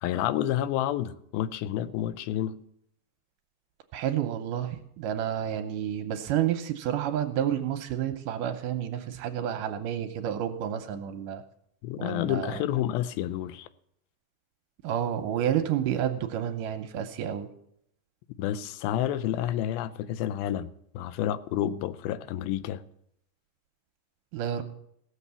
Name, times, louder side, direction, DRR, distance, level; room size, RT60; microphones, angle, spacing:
voice 1, 0.0-2.6 11.8-13.7 18.4-20.7 20.9-22.8, left 12 dB, 85° left, 2.5 m, -29 dB
voice 2, 3.9-11.4 12.0-12.6 14.8-17.5 24.3-24.6, right 10 dB, 75° right, 2.2 m, -30 dB
16.5 x 7.1 x 6.9 m
omnidirectional pair, 4.2 m